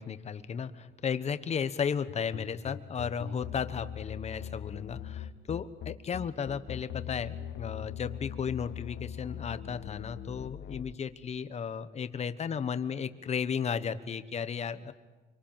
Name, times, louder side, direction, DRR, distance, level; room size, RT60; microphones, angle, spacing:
voice 1, 0.0-14.9, left 7 dB, 35° left, 12 dB, 1.2 m, -34 dB
sound 1, 2.1-10.9, left 10 dB, 65° left, 1.7 m, -41 dB
27.0 x 24.5 x 9.1 m, 1.2 s
cardioid pair, 165°, 19 cm